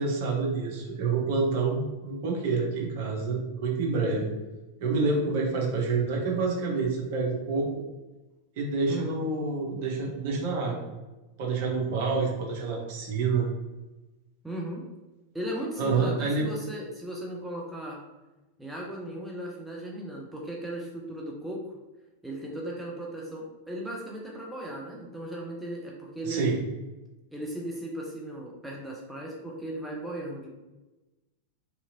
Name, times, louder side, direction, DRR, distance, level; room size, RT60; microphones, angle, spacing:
voice 1, 0.0-4.3 4.8-7.7 8.6-10.8 11.4-13.5 15.8-16.5 26.2-26.6, right 4 dB, 50° right, -2 dB, 0.8 m, -28 dB
voice 2, 8.9-9.2 14.4-14.8 15.3-18.0 18.6-21.6 22.2-26.6 27.3-30.5, right 1 dB, 5° right, -3 dB, 0.5 m, -36 dB
2.8 x 2.4 x 2.6 m, 1.1 s
figure-of-eight pair, 90°, 0 cm